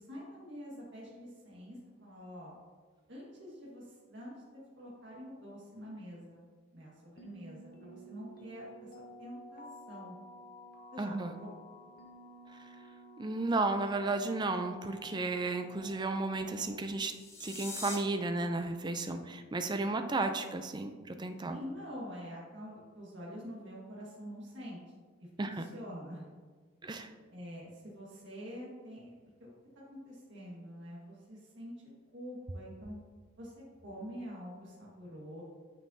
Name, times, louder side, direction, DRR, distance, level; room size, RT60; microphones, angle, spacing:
voice 1, 0.0-2.6 3.1-6.4 6.7-8.9 9.2-10.1 10.9-11.5 21.4-24.8 25.2-26.3 27.3-29.5 29.9-31.7 32.1-33.0 33.4-35.4, equal, 65° right, -5 dB, 1.7 m, -46 dB
sound 1, 7.2-16.8, equal, 50° left, 0.8 m, -53 dB
voice 2, 11.0-11.3 13.2-17.1 17.4-21.6 25.4-25.6 26.8-27.1, right 3 dB, 20° right, 7 dB, 0.4 m, -33 dB
sound 2, 17.0-18.0, left 3 dB, 15° left, 0.8 m, -42 dB
8.9 x 5.6 x 2.7 m, 1.5 s
head